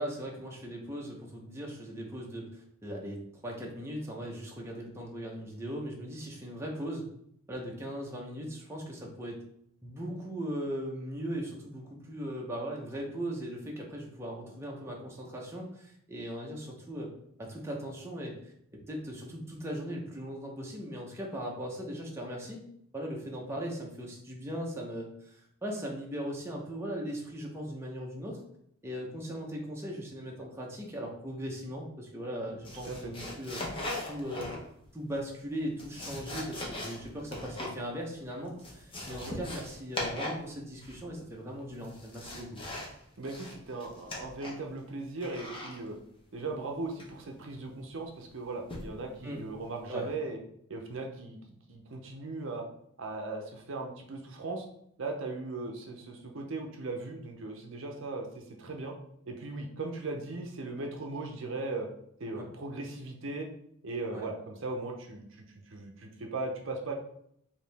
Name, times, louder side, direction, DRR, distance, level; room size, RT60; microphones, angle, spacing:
voice 1, 0.0-7.1 7.5-9.4 9.8-17.1 17.4-18.5 18.9-22.6 22.9-28.4 28.8-33.6 34.1-34.5 34.9-42.6 49.2-49.4 49.9-50.1 62.4-62.5 64.1-64.2, equal, 10° right, -2 dB, 0.7 m, -38 dB
sound 1, 32.6-34.9 35.6-37.8 38.1-38.2 38.5-40.5 40.7-41.2 41.7-42.9 43.2-44.7 45.2-45.8 47.0-47.3 48.7-49.0 49.5-49.7, left 1 dB, 25° left, 0.8 m, -39 dB
voice 2, 43.2-46.0 46.3-50.4 50.7-52.6 53.0-54.7 55.0-58.9 59.3-61.9 62.2-63.5 63.8-66.9, right 3 dB, 60° right, 2 dB, 0.6 m, -38 dB
4.8 x 2.7 x 3.3 m, 0.71 s
head